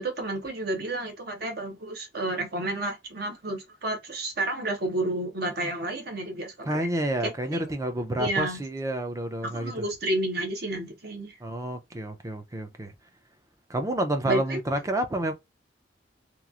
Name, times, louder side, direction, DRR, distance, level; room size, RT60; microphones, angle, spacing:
voice 1, 0.0-6.9 7.2-7.6 8.2-8.6 9.4-11.4 14.3-14.6, right 2 dB, 55° right, 0.9 m, -31 dB
voice 2, 6.7-9.8 11.4-12.9 13.7-15.3, right 1 dB, 15° right, 0.4 m, -29 dB
2.9 x 2.4 x 2.4 m
head